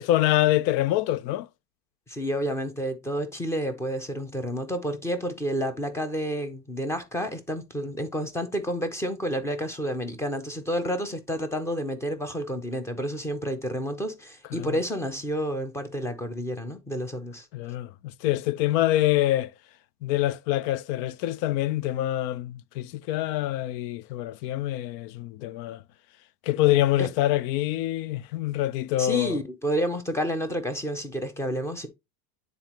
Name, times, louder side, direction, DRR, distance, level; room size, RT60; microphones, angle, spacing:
voice 1, 0.0-1.5 14.5-14.8 17.5-19.5 20.0-25.8 26.4-29.4, left 14 dB, 85° left, 0.6 m, -25 dB
voice 2, 2.1-17.5 27.0-27.1 29.0-31.9, equal, 5° left, 0.5 m, -30 dB
9.1 x 4.0 x 2.9 m
cardioid pair, 160°, 48 cm